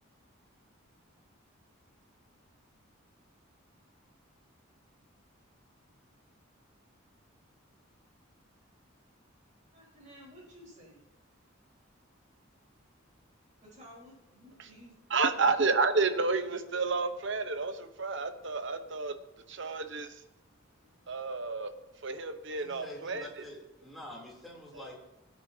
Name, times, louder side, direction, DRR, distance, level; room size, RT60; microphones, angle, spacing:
voice 1, 9.7-11.0 13.6-14.9 20.8-21.1, equal, 35° right, -4 dB, 4.5 m, -54 dB
voice 2, 15.1-19.2 19.5-20.2 21.1-21.7 22.0-23.3 24.7-24.9, right 4 dB, 60° right, 9 dB, 1.0 m, -30 dB
voice 3, 22.6-25.0, left 1 dB, ahead, -4 dB, 3.3 m, -46 dB
18.0 x 9.1 x 2.8 m, 0.95 s
head